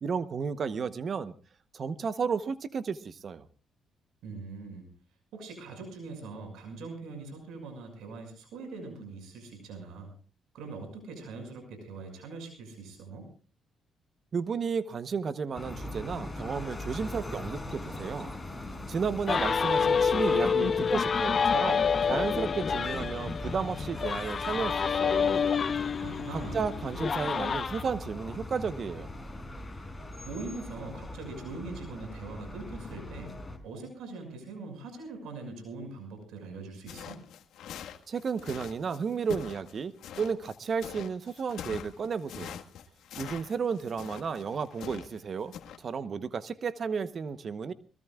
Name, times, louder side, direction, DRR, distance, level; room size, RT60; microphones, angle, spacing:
voice 1, 0.0-1.3 1.7-3.5 14.3-18.3 18.9-25.5 26.3-29.1 38.1-42.6 43.2-47.7, right 6 dB, 50° right, 13 dB, 0.9 m, -33 dB
voice 2, 4.2-4.9 5.3-10.1 10.5-13.3 26.0-26.6 30.2-33.3 33.6-37.2, right 3 dB, 85° right, 5 dB, 6.2 m, -42 dB
sound 1, 15.6-33.6, left 1 dB, 15° left, 5.0 m, -40 dB
sound 2, 19.3-27.8, left 6 dB, 45° left, 0.8 m, -28 dB
sound 3, 36.9-45.2 45.5-45.8, left 9 dB, 80° left, 1.6 m, -44 dB
22.5 x 21.5 x 2.4 m, 0.37 s
cardioid pair, 90°, 0 cm